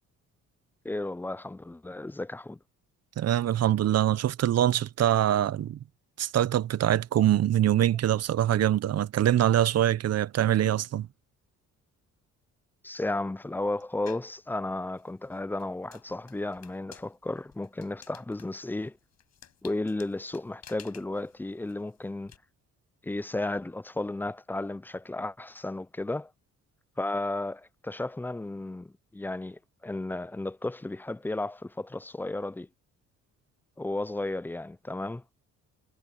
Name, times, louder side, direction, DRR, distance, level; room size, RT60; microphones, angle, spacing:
voice 1, 0.8-2.6 12.8-19.0 19.6-22.3 23.0-26.3 27.0-32.7 33.8-35.2, left 2 dB, 5° left, 0.4 m, -33 dB
voice 2, 3.2-5.8 6.2-11.1, right 12 dB, 55° right, 0.8 m, -24 dB
sound 1, 14.1-14.4 14.9-22.4, left 8 dB, 60° left, 7.3 m, -53 dB
cardioid pair, 90°, 30 cm